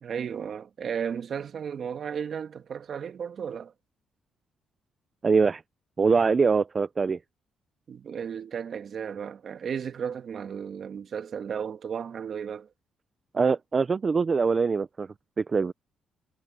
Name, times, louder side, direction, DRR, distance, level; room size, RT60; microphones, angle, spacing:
voice 1, 0.0-3.7 7.9-12.7, right 7 dB, 55° right, 1.8 m, -34 dB
voice 2, 5.2-5.6 6.0-7.2 13.3-15.1 15.4-15.7, right 5 dB, 35° right, 0.5 m, -23 dB
cardioid pair, 90°, 0 cm